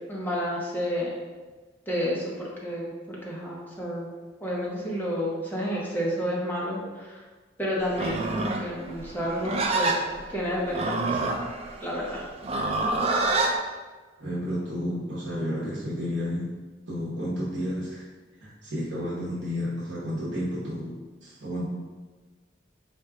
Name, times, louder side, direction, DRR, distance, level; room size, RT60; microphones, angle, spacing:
voice 1, 0.1-1.1 1.9-4.1 4.4-7.2 7.6-10.0 10.3-11.2 11.8-12.2, equal, 10° left, -5 dB, 0.8 m, -30 dB
Livestock farm animals working animals, 7.9-13.6, right 2 dB, 30° right, 0.3 m, -27 dB
voice 2, 14.2-16.5 16.9-18.0 18.4-20.9 21.2-21.6, equal, 65° right, -8 dB, 0.9 m, -31 dB
4.3 x 2.3 x 3.5 m, 1.3 s
head